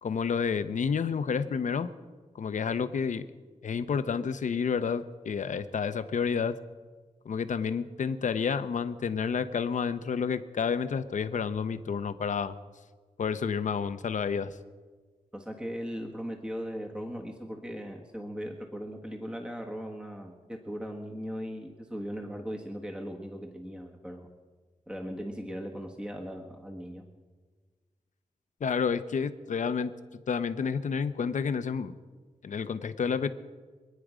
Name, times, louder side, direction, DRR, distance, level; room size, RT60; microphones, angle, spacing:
voice 1, 0.0-1.9 2.3-3.2 3.6-6.6 7.2-12.6 13.2-14.5 28.6-29.9 30.3-31.9 32.4-33.3, left 6 dB, 70° left, 12 dB, 0.8 m, -30 dB
voice 2, 15.3-24.3 24.9-27.0, equal, 5° right, 1 dB, 1.5 m, -38 dB
26.0 x 9.5 x 5.0 m, 1.4 s
wide cardioid pair, 105°, 13 cm